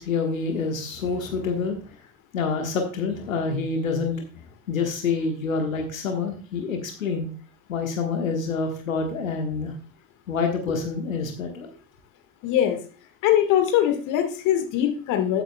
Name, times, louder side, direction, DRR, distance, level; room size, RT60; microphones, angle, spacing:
voice 1, 0.0-2.0 2.3-7.3 7.7-9.7 10.3-11.7, left 4 dB, 75° left, 3 dB, 1.5 m, -27 dB
voice 2, 12.4-12.8 13.2-15.4, left 11 dB, 50° left, 6 dB, 1.7 m, -22 dB
14.0 x 8.2 x 2.2 m, 0.37 s
figure-of-eight pair, 65°, 40 cm